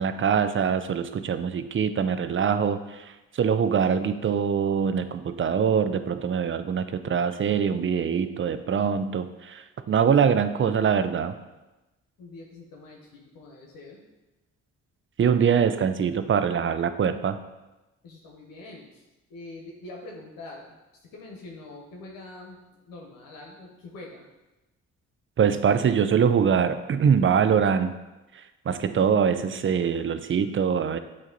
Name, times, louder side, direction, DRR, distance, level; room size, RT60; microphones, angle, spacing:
voice 1, 0.0-11.3 15.2-17.4 25.4-28.0 28.3-31.0, right 7 dB, 35° right, 11 dB, 0.5 m, -23 dB
voice 2, 12.2-14.0 18.0-19.0 19.3-24.2, left 2 dB, 80° left, -1 dB, 1.1 m, -44 dB
8.2 x 2.9 x 3.9 m, 1.0 s
supercardioid pair, 55°, 34 cm